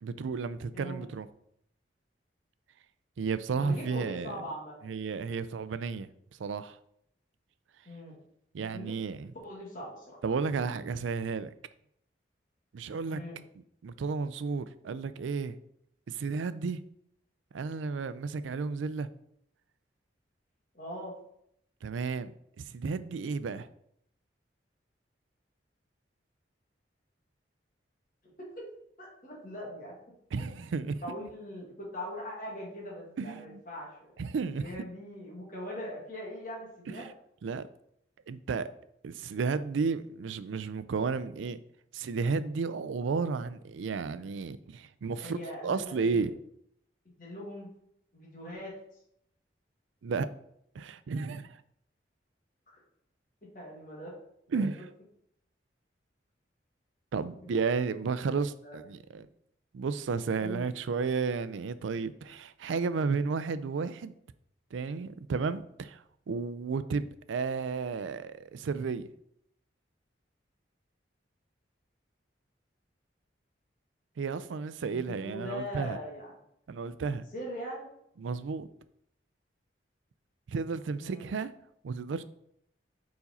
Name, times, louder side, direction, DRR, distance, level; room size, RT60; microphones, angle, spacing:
voice 1, 0.0-1.3 3.2-4.4 4.8-6.1 6.4-6.8 8.5-9.3 10.2-11.5 12.7-13.2 13.8-15.6 16.1-16.8 17.5-19.1 21.8-22.3 22.6-23.7 30.3-31.0 33.2-33.6 34.2-34.7 36.9-37.1 37.4-37.7 38.3-38.7 39.0-41.6 41.9-45.4 45.6-46.3 50.0-50.3 50.7-51.6 54.5-54.8 57.1-59.3 59.7-64.1 64.7-69.1 74.2-76.0 76.7-77.2 78.2-78.7 80.5-81.5 81.8-82.2, right 5 dB, 90° right, 0.4 m, -32 dB
voice 2, 0.7-1.1 3.6-4.7 7.9-8.2 8.7-8.9 9.4-10.2 13.1-13.4 20.7-21.1 28.4-28.7 29.0-29.9 30.4-30.5 31.0-34.2 34.5-37.0 45.2-46.2 47.2-47.7 48.1-48.7 53.5-54.1 54.5-54.6 57.4-57.5 58.2-58.3 58.6-58.8 60.4-60.7 74.9-76.4 77.3-77.9 81.0-81.3, equal, 45° left, 1.9 m, -41 dB
5.2 x 4.7 x 4.2 m
head